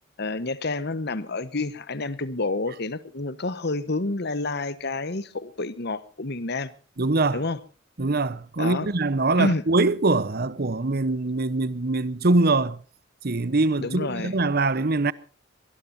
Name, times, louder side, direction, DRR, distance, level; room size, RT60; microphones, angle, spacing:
voice 1, 0.2-6.7 7.3-7.6 8.6-8.9 9.4-9.6 13.8-14.3, left 2 dB, 55° left, 1.2 m, -29 dB
voice 2, 7.0-7.4 8.0-12.8 13.2-15.1, right 2 dB, 50° right, 0.9 m, -23 dB
24.0 x 19.0 x 2.7 m
head